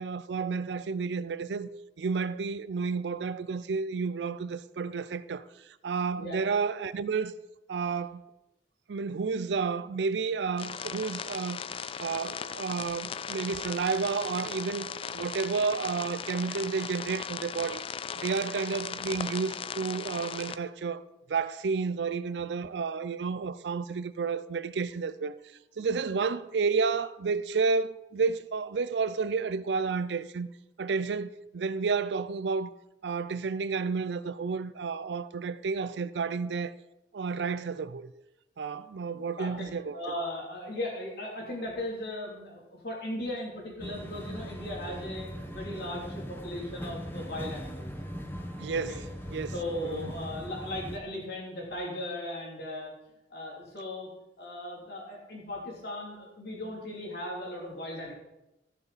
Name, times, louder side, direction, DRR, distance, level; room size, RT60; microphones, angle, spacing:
voice 1, 0.0-1.7 2.0-5.5 5.8-7.3 7.7-8.2 8.9-11.6 12.0-17.8 18.2-21.0 21.3-25.3 25.8-30.5 30.8-32.7 33.0-36.7 37.1-38.1 38.6-40.0 48.6-49.0 49.3-49.5 49.8-50.1, right 5 dB, 75° right, 0.5 m, -31 dB
sound 1, 10.6-20.6, left 7 dB, 30° left, 0.3 m, -38 dB
voice 2, 39.1-48.0 48.9-49.0 49.5-52.9 53.3-54.1 54.4-58.1, left 1 dB, 65° left, 2.9 m, -37 dB
sound 2, 43.8-51.0, equal, 10° left, 0.9 m, -40 dB
14.5 x 6.8 x 4.1 m
head